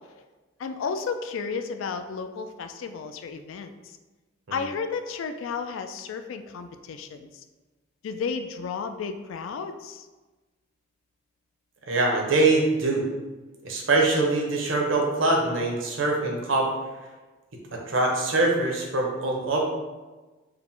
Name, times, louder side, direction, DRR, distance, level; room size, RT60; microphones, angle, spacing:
voice 1, 0.6-4.0 4.5-7.4 8.0-10.1, left 5 dB, 75° left, 8 dB, 0.3 m, -33 dB
voice 2, 11.9-13.0 13.6-16.7 17.7-19.6, right 2 dB, 70° right, 0 dB, 0.8 m, -23 dB
4.7 x 2.1 x 3.6 m, 1.2 s
head